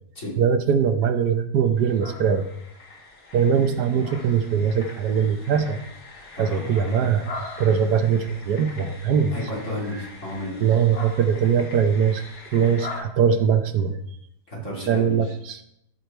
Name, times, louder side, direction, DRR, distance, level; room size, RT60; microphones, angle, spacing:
voice 1, 0.4-2.5 3.3-5.8 6.4-7.3 7.6-9.4 10.6-12.2 12.5-14.0 14.9-15.6, right 7 dB, 80° right, 8 dB, 1.4 m, -21 dB
sound 1, 1.8-13.0, left 3 dB, 75° left, 2.5 m, -41 dB
voice 2, 6.3-6.7 9.3-10.6 14.5-15.3, left 1 dB, 45° left, -6 dB, 3.8 m, -32 dB
14.5 x 5.0 x 4.5 m, 0.79 s
omnidirectional pair, 1.7 m